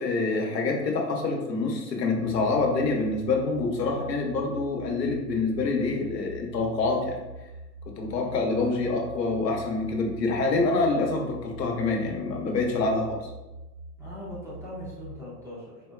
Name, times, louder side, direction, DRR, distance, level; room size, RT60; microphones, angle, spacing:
voice 1, 0.0-7.2 8.0-13.2, left 3 dB, 80° left, 1 dB, 0.8 m, -26 dB
sound 1, 2.2-15.2, right 2 dB, 70° right, 1.3 m, -44 dB
voice 2, 14.0-15.9, left 1 dB, 5° right, -9 dB, 0.6 m, -40 dB
3.9 x 2.1 x 2.3 m, 1.1 s
hypercardioid pair, 110°, 49 cm